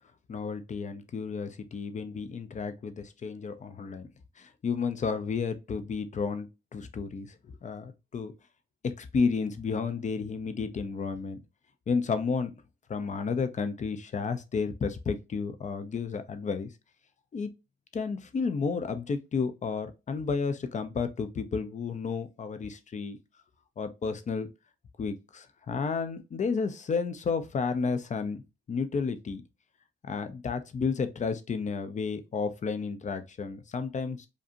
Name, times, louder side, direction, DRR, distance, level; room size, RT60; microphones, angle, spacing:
voice 1, 0.3-4.1 4.4-7.4 7.6-8.3 8.8-11.4 11.9-12.5 12.9-16.7 17.3-17.5 17.9-23.2 23.8-24.5 25.0-28.4 28.7-29.4 30.0-34.3, left 5 dB, 35° left, 0.6 m, -32 dB
5.1 x 2.7 x 2.6 m
cardioid pair, 130°, 21 cm